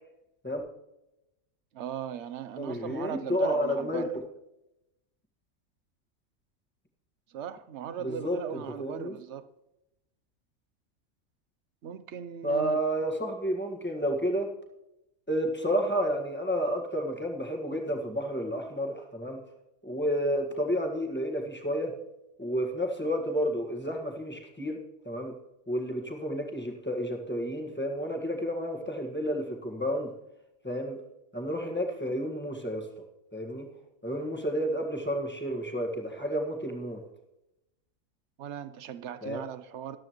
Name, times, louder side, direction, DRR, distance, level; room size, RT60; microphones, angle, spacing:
voice 1, 1.7-4.1 7.3-9.5 11.8-12.8 38.4-40.0, right 9 dB, 60° right, 0.9 m, -38 dB
voice 2, 2.6-4.1 8.0-8.4 8.8-9.2 12.4-14.5 15.3-19.4 19.8-21.9 22.4-25.3 25.7-30.1 30.6-31.0 31.3-32.9 33.3-33.7 34.0-37.0 39.2-39.4, equal, 10° left, 1.6 m, -31 dB
14.0 x 12.0 x 3.1 m
omnidirectional pair, 1.5 m